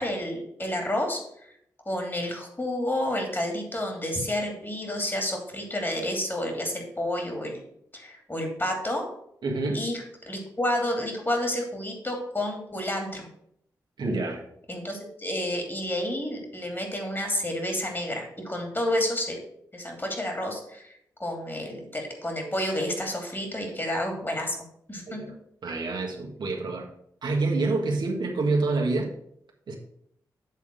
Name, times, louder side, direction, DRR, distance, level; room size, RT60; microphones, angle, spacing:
voice 1, 0.0-1.5 1.8-7.6 7.9-9.0 9.7-13.3 14.7-19.4 19.7-24.6 24.9-25.2, left 1 dB, 25° left, 2 dB, 2.8 m, -30 dB
voice 2, 9.4-9.8 14.0-14.4 25.1-25.3 25.6-26.9 27.2-29.1 29.7-29.8, right 3 dB, 65° right, -1 dB, 1.6 m, -27 dB
8.2 x 3.6 x 6.2 m, 0.72 s
supercardioid pair, 45°, 8 cm